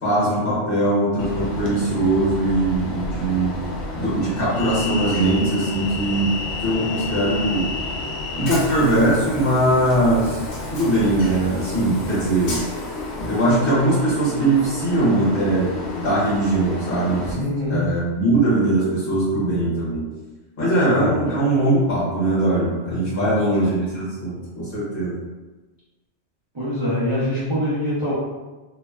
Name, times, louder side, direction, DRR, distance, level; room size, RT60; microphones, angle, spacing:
voice 1, 0.0-3.6 3.9-6.3 6.6-7.7 8.3-10.4 10.7-12.6 13.3-15.7 16.0-17.4 17.7-20.0 20.6-25.1, right 1 dB, 50° left, -9 dB, 1.2 m, -20 dB
Train, 1.2-17.3, left 2 dB, 70° left, 0.8 m, -30 dB
voice 2, 17.3-18.0 21.1-21.2 23.2-23.3 26.5-28.1, left 1 dB, 35° right, -11 dB, 0.4 m, -24 dB
2.7 x 2.1 x 2.2 m, 1.2 s
omnidirectional pair, 1.2 m